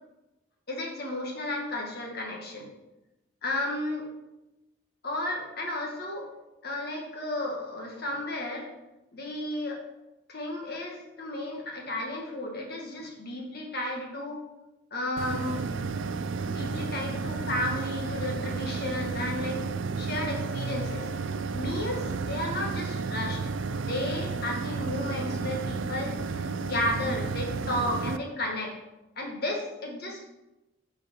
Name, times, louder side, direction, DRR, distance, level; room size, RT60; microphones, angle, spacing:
voice 1, 0.7-2.7 3.4-4.1 5.0-6.3 6.6-8.7 9.1-9.8 10.3-14.4 14.9-15.6 16.4-19.6 20.0-21.1 21.5-23.5 23.8-28.7 29.2-30.3, left 1 dB, 50° left, 0 dB, 1.6 m, -33 dB
sound 1, 15.2-28.2, right 4 dB, 65° right, 0.4 m, -32 dB
8.4 x 5.0 x 4.3 m, 0.98 s
head